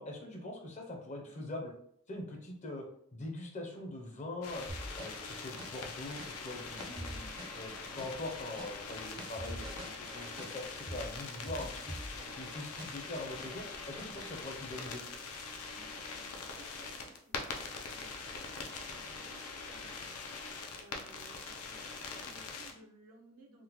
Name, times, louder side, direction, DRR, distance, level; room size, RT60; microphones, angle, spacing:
voice 1, 0.0-1.7 2.1-2.8 3.1-4.7 5.0-7.3 7.5-9.7 10.1-15.0, left 2 dB, 30° left, 1 dB, 0.5 m, -43 dB
voice 2, 1.2-1.6 9.3-9.8 15.7-20.1 20.7-23.6, right 2 dB, 85° right, 0 dB, 0.7 m, -60 dB
sound 1, 4.4-22.7, left 4 dB, 90° left, 0.5 m, -43 dB
sound 2, 4.7-13.1 13.4-14.2, equal, 20° right, 0.4 m, -46 dB
3.6 x 2.1 x 2.9 m, 0.67 s
head